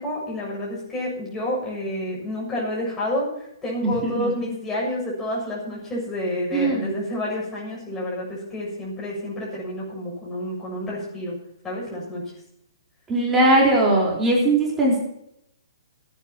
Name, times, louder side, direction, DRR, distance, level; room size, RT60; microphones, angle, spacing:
voice 1, 0.0-11.4 11.6-12.2, left 1 dB, 10° left, -6 dB, 7.2 m, -29 dB
voice 2, 3.8-4.1 6.5-6.9 13.1-15.0, right 1 dB, 10° right, -4 dB, 4.2 m, -19 dB
29.5 x 9.8 x 3.0 m, 0.76 s
hypercardioid pair, 150°, 2 cm